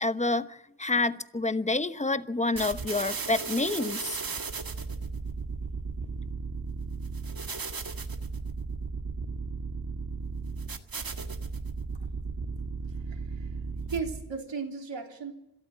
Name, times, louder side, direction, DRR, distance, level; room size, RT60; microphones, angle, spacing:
voice 1, 0.0-4.2, left 3 dB, 15° left, 12 dB, 1.0 m, -28 dB
sound 1, 2.6-14.4, right 4 dB, 45° right, 1.8 m, -35 dB
voice 2, 13.1-13.5 13.9-15.3, right 5 dB, 65° right, 2 dB, 3.5 m, -35 dB
26.5 x 13.0 x 7.7 m, 0.88 s
cardioid pair, 65°, 49 cm